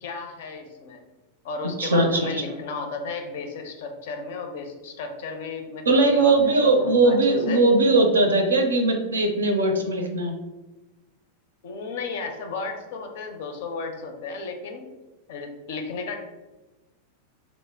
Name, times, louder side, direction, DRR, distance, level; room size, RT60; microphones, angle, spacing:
voice 1, 0.0-1.0 1.4-7.6 11.6-14.9 15.3-16.2, left 4 dB, 55° left, 5 dB, 0.4 m, -34 dB
voice 2, 1.8-2.3 5.9-10.4, right 2 dB, 70° right, 4 dB, 0.4 m, -20 dB
2.9 x 2.1 x 3.3 m, 1.1 s
figure-of-eight pair, 90°, 0 cm